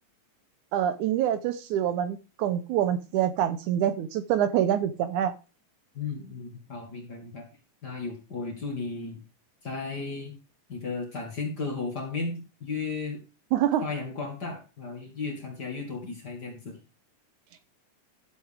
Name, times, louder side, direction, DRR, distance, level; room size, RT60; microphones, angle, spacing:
voice 1, 0.7-5.3 13.5-13.8, right 10 dB, 80° right, 11 dB, 2.0 m, -26 dB
voice 2, 5.9-7.5 7.8-9.2 9.6-10.3 10.7-13.2 13.8-16.8, left 4 dB, 35° left, 2 dB, 2.0 m, -34 dB
13.5 x 7.7 x 3.5 m, 0.32 s
omnidirectional pair, 3.8 m